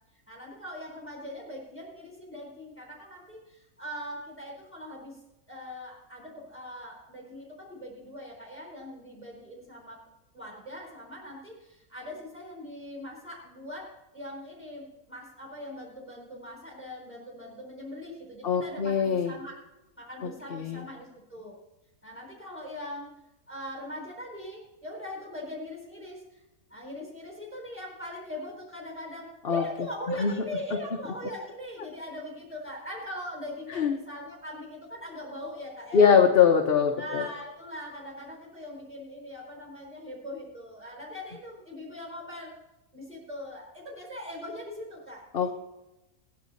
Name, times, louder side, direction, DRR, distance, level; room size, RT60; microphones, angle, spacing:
voice 1, 0.3-5.2 5.5-10.0 10.3-13.9 14.1-19.6 20.0-21.5 22.0-23.1 23.5-26.4 26.7-36.2 37.0-42.5 42.9-45.5, left 1 dB, 10° left, -2 dB, 3.8 m, -41 dB
voice 2, 18.4-19.3 20.2-20.8 29.4-29.6 30.2-30.3 33.7-34.0 35.9-37.2 45.3-45.5, left 7 dB, 45° left, 1 dB, 1.1 m, -22 dB
19.0 x 10.5 x 4.1 m, 0.97 s
omnidirectional pair, 1.5 m